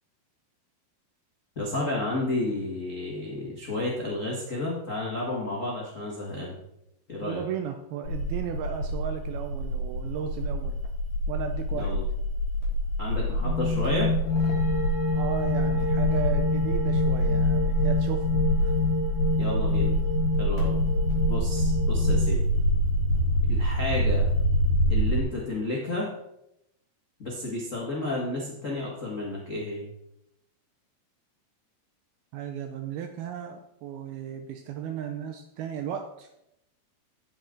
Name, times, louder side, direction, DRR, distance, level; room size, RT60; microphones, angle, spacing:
voice 1, 1.5-6.6 7.1-7.4 11.7-12.0 13.0-14.1 19.4-19.9 20.4-20.7 21.3-22.4 23.5-24.3 24.9-26.1 27.2-29.8, left 2 dB, 85° left, -5 dB, 0.7 m, -31 dB
voice 2, 7.2-10.8 11.3-11.9 15.1-18.8 32.3-36.3, right 8 dB, 80° right, 6 dB, 2.3 m, -35 dB
sound 1, 8.1-25.2, equal, 40° left, 4.6 m, -26 dB
sound 2, 13.4-22.3, left 3 dB, 60° left, 2.8 m, -28 dB
9.8 x 9.2 x 3.9 m, 0.82 s
omnidirectional pair, 4.9 m